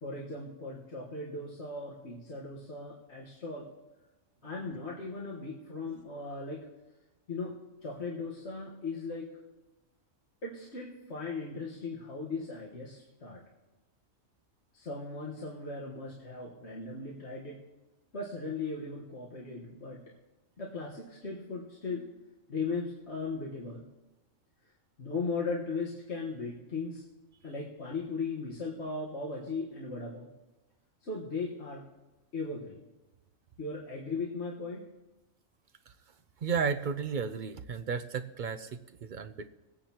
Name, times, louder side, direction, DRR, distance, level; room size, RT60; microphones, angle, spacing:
voice 1, 0.0-3.7 4.4-6.7 7.3-7.6 7.8-9.3 10.4-13.4 14.7-17.6 18.1-20.0 20.6-22.1 22.5-23.8 25.0-27.0 27.4-30.3 31.0-31.9 32.3-32.8 33.6-34.8, left 3 dB, 55° left, -4 dB, 1.7 m, -37 dB
voice 2, 36.4-39.5, right 6 dB, 55° right, 8 dB, 0.5 m, -33 dB
22.5 x 9.3 x 2.9 m, 1.1 s
omnidirectional pair, 1.4 m